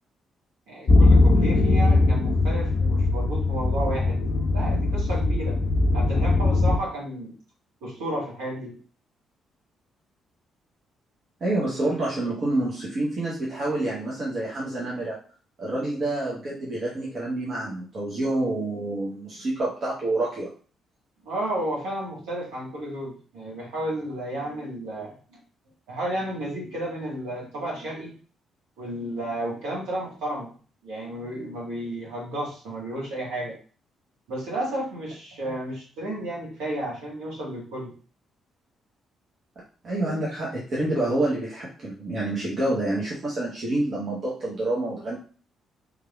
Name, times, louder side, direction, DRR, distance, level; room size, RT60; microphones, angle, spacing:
voice 1, 0.7-4.2 4.5-5.6 5.9-7.3 7.8-8.8 21.2-25.2 25.9-28.2 28.8-30.5 30.8-33.6 34.3-37.9, right 1 dB, 65° right, -5 dB, 1.5 m, -32 dB
sound 1, 0.9-6.8, left 2 dB, 50° left, 0.4 m, -20 dB
voice 2, 11.4-15.2 15.6-20.5 39.8-45.2, right 2 dB, 45° right, -5 dB, 0.9 m, -27 dB
3.5 x 3.3 x 2.3 m, 0.40 s
figure-of-eight pair, 40°, 0 cm